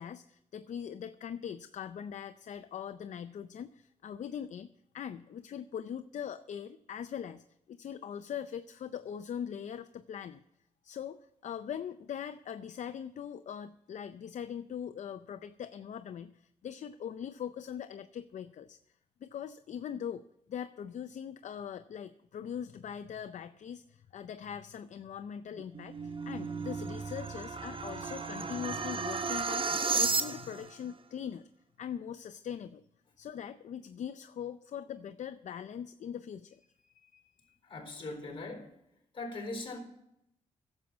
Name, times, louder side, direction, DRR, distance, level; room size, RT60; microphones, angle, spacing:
voice 1, 0.0-4.7 4.9-10.4 10.8-18.8 19.2-31.5 31.8-32.8 33.2-37.6, left 8 dB, 65° left, 11 dB, 0.5 m, -41 dB
sound 1, 25.5-30.7, right 4 dB, 40° right, 1.1 m, -34 dB
voice 2, 37.6-38.7 39.1-39.8, left 2 dB, 40° left, 4 dB, 4.0 m, -40 dB
11.0 x 7.5 x 8.3 m, 0.81 s
cardioid pair, 75°, 13 cm